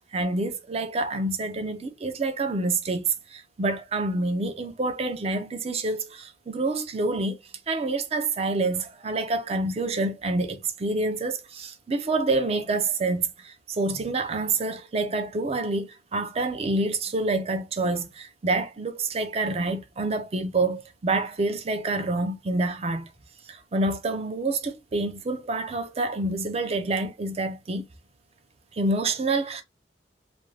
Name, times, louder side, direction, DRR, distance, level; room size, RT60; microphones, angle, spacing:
voice 1, 0.0-7.4 7.7-23.1 23.5-27.8 28.7-29.6, right 2 dB, 35° right, 0.5 m, -27 dB
2.6 x 2.2 x 3.1 m
head